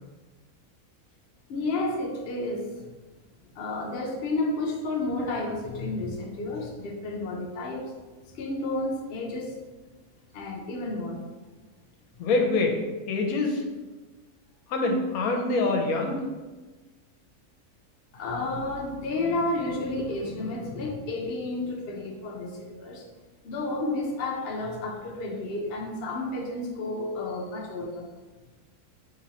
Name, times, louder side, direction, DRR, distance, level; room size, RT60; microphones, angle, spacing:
voice 1, 1.5-2.9 3.5-7.9 8.3-9.6 10.3-11.2 18.1-23.0 23.4-28.1, left 2 dB, 55° left, 0 dB, 0.7 m, -31 dB
voice 2, 12.2-12.8 13.1-13.6 14.7-16.2, left 3 dB, 80° left, 2 dB, 1.1 m, -25 dB
3.1 x 2.9 x 3.9 m, 1.2 s
omnidirectional pair, 1.5 m